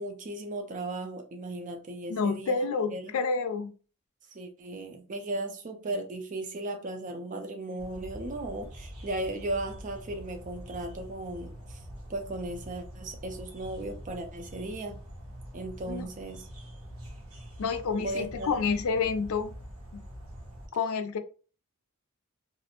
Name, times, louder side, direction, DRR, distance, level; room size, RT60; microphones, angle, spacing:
voice 1, 0.0-3.1 4.3-11.8 12.1-15.0 15.5-16.5 18.0-18.5, right 2 dB, 35° right, 0.4 m, -36 dB
voice 2, 2.1-3.7 15.9-16.1 17.6-19.5 19.9-20.0 20.7-21.2, left 5 dB, 70° left, 0.4 m, -29 dB
sound 1, 7.8-20.7, equal, 75° right, 0.8 m, -45 dB
2.4 x 2.0 x 2.8 m
head